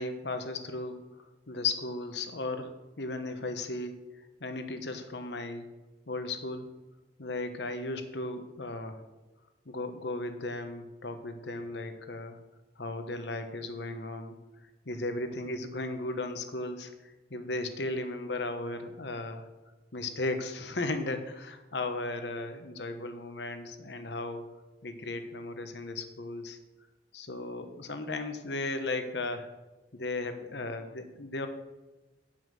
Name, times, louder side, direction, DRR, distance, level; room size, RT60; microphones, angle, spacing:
voice 1, 0.0-3.9 4.4-5.7 6.1-6.7 7.2-9.0 9.7-12.4 12.8-14.4 14.8-19.5 19.9-24.4 24.8-26.6 27.1-29.5 29.9-31.5, left 2 dB, 75° left, 8 dB, 1.1 m, -36 dB
9.3 x 5.8 x 6.3 m, 1.1 s
head